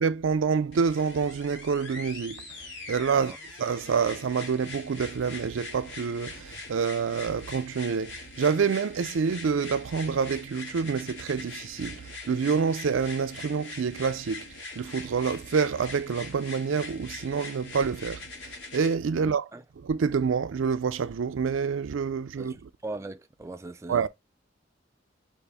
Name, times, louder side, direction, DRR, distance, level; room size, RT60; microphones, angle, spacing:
voice 1, 0.0-2.4 2.9-3.3 3.6-14.5 14.8-18.2 18.7-19.5 19.8-22.7 23.9-24.1, right 6 dB, 85° right, 0.4 m, -27 dB
sound 1, 0.7-18.9 19.9-20.0, left 3 dB, 85° left, 2.2 m, -43 dB
voice 2, 19.2-19.6 22.4-24.1, right 2 dB, 15° right, 0.3 m, -40 dB
5.3 x 2.6 x 3.4 m
head